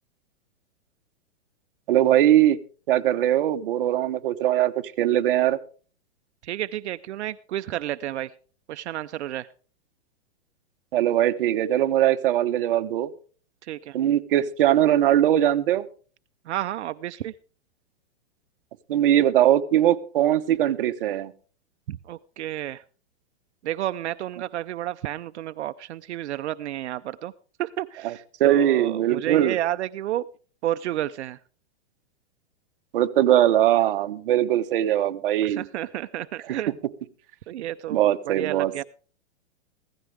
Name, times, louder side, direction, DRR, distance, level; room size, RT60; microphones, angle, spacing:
voice 1, 1.9-2.6 2.9-5.6 10.9-13.1 13.9-15.9 18.9-21.3 28.4-29.6 32.9-35.6 37.9-38.8, right 12 dB, 55° right, 7 dB, 1.1 m, -21 dB
voice 2, 6.4-8.3 8.7-9.5 13.6-14.0 16.5-17.3 21.9-22.8 23.6-27.3 27.6-30.3 30.6-31.4 35.4-36.7 37.5-38.8, right 13 dB, 85° right, 11 dB, 0.6 m, -31 dB
16.0 x 14.0 x 3.3 m, 0.40 s
supercardioid pair, 165°, 33 cm